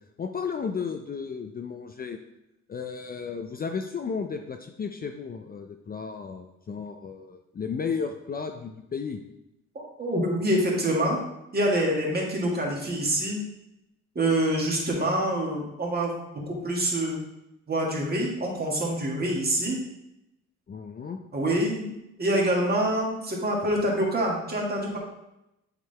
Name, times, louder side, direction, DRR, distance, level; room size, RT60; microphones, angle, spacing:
voice 1, 0.2-2.2 2.7-9.2 20.7-21.2, left 5 dB, 30° left, 5 dB, 0.5 m, -34 dB
voice 2, 9.8-11.2 11.5-13.4 14.2-16.1 16.5-17.2 17.7-19.8 21.3-21.9 22.2-25.0, right 1 dB, 30° right, -2 dB, 1.8 m, -26 dB
7.9 x 3.8 x 3.3 m, 0.88 s
cardioid pair, 90°, 30 cm